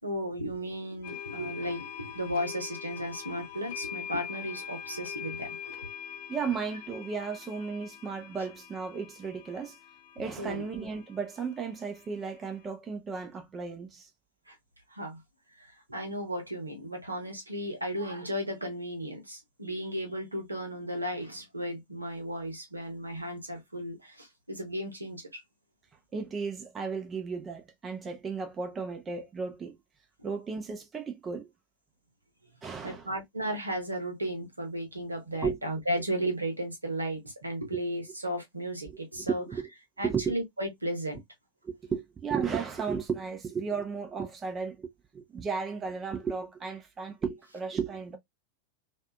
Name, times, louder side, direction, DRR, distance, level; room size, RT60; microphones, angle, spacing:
voice 1, 0.0-5.6 10.4-10.7 14.5-14.6 14.9-15.2 15.6-25.4 32.8-39.4 40.0-41.2, equal, 80° right, 0.9 m, -35 dB
sound 1, 1.0-12.6, left 9 dB, 50° left, 0.8 m, -43 dB
voice 2, 6.3-9.8 10.2-14.1 26.1-29.8 30.2-31.5 32.6-33.1 35.4-35.6 38.9-39.0 39.3-39.7 40.0-40.4 41.6-48.2, right 5 dB, 20° right, 0.5 m, -34 dB
2.5 x 2.4 x 2.3 m
figure-of-eight pair, 90°, 0 cm